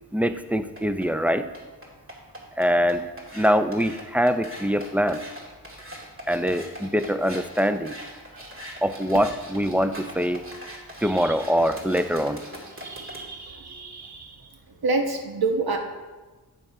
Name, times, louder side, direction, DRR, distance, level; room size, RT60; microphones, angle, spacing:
voice 1, 0.1-1.5 2.6-3.1 3.3-5.2 6.3-8.0 8.8-10.5 11.0-12.4, equal, 5° right, 10 dB, 0.4 m, -23 dB
sound 1, 0.5-13.2, equal, 30° right, 2.1 m, -41 dB
voice 2, 11.0-11.4 12.7-15.8, right 3 dB, 60° right, 3 dB, 1.2 m, -29 dB
8.5 x 5.4 x 4.7 m, 1.2 s
cardioid pair, 60°, 40 cm